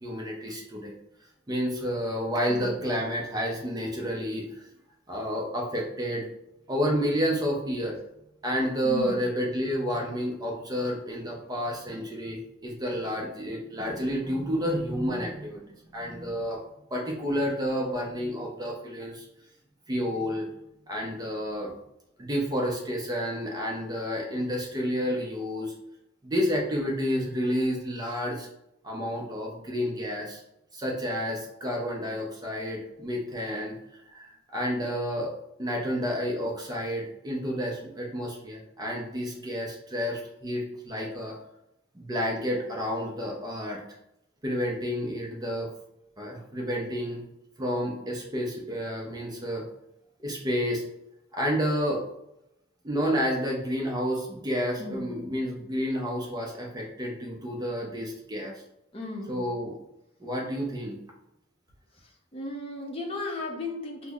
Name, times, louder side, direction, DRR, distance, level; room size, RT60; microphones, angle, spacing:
voice 1, 0.0-0.9 1.5-4.7 5.1-6.3 6.7-8.0 8.4-15.6 15.9-16.6 16.9-19.3 19.9-20.5 20.9-21.7 22.2-25.7 26.2-28.5 28.8-30.4 30.7-35.3 35.6-41.4 41.9-43.8 44.4-45.7 46.2-47.2 47.6-49.6 50.2-50.8 51.3-52.0 52.8-58.5 59.3-59.8 60.2-61.0, equal, 20° right, -1 dB, 0.5 m, -30 dB
voice 2, 8.8-9.2 54.8-55.1 58.9-59.5 62.3-64.1, left 2 dB, 25° left, 0 dB, 0.6 m, -35 dB
5.2 x 2.0 x 2.3 m, 0.85 s
head